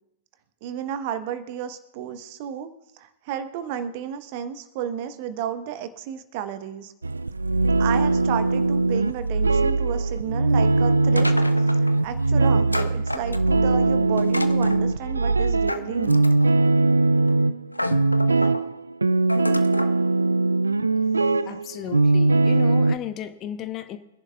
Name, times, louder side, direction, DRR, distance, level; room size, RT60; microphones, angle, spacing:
voice 1, 0.6-6.9 7.8-11.3 11.8-16.3, right 9 dB, 40° right, 10 dB, 1.0 m, -32 dB
sound 1, 7.0-22.9, right 3 dB, 80° right, 0.4 m, -21 dB
sound 2, 11.2-12.0 12.7-13.7 14.2-14.8 15.7-16.6 17.3-17.4 17.7-18.6 19.3-20.0, left 1 dB, 85° left, 0.7 m, -30 dB
voice 2, 21.5-24.0, left 10 dB, 30° left, 9 dB, 0.9 m, -34 dB
25.0 x 11.0 x 2.3 m, 0.91 s
figure-of-eight pair, 105°, 0 cm